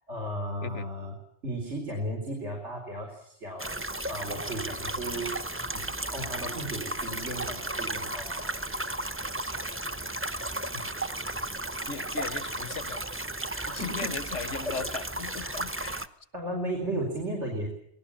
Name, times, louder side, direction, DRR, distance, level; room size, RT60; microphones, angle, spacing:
voice 1, 0.1-1.2 1.4-3.8 4.1-5.4 5.7-8.5 13.5-14.2 14.6-15.0 15.4-15.6 16.3-17.7, right 1 dB, 75° right, 2 dB, 4.9 m, -35 dB
sound 1, 3.6-16.1, right 1 dB, 10° right, 0.9 m, -34 dB
voice 2, 11.9-13.0 13.7-16.1, left 5 dB, 85° left, 14 dB, 1.5 m, -37 dB
26.5 x 19.0 x 7.3 m, 0.73 s
omnidirectional pair, 1.2 m